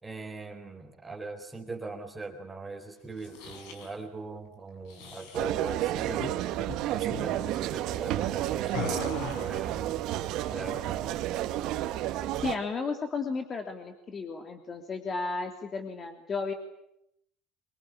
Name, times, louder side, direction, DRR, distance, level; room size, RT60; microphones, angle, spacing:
voice 1, 0.0-6.4 6.9-10.0 10.5-11.0, right 3 dB, 15° right, 2 dB, 4.1 m, -40 dB
sound 1, 3.1-3.9 4.8-5.4 6.1-6.3 6.6-6.8 7.1-7.4 8.7-9.6, left 6 dB, 75° left, 6.9 m, -39 dB
sound 2, 5.3-12.6, right 13 dB, 65° right, 2.2 m, -31 dB
voice 2, 12.4-16.5, left 4 dB, 30° left, 5 dB, 3.0 m, -33 dB
24.5 x 21.5 x 10.0 m, 0.79 s
supercardioid pair, 110°, 0 cm